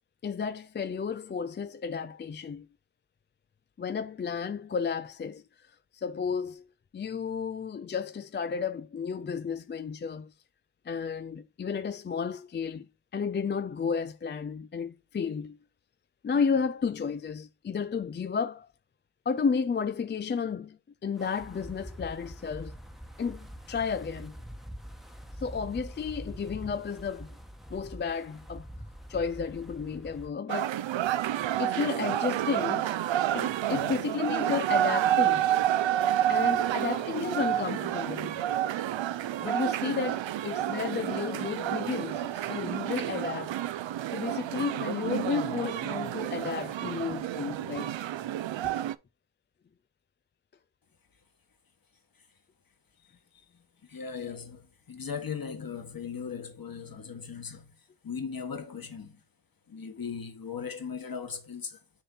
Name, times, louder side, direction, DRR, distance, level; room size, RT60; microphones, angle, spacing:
voice 1, 0.2-2.7 3.8-5.4 5.9-6.6 6.9-10.3 10.9-12.9 13.1-15.6 16.2-18.7 19.3-22.8 23.2-24.4 25.4-27.3 27.7-28.7 29.1-30.7 31.6-32.9 33.3-35.5 36.3-38.4 39.4-43.6 44.1-48.0 48.6-48.7, left 6 dB, 25° left, 0.3 m, -32 dB
Wind, 21.2-30.3, equal, ahead, 1.1 m, -44 dB
sound 1, 30.5-48.9, right 12 dB, 65° right, 0.6 m, -29 dB
voice 2, 53.8-57.8 58.0-59.2 59.7-61.8, left 6 dB, 45° left, 1.7 m, -38 dB
6.7 x 4.3 x 4.0 m
cardioid pair, 85°, 50 cm